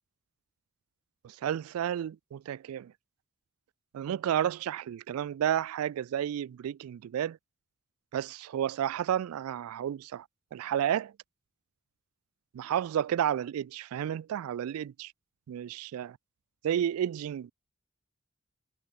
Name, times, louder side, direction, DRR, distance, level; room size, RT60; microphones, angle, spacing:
voice 1, 1.2-2.9 3.9-7.4 8.1-10.3 10.5-11.1 12.5-15.1 15.5-16.2 16.6-17.5, right 10 dB, 85° right, 0.3 m, -31 dB
head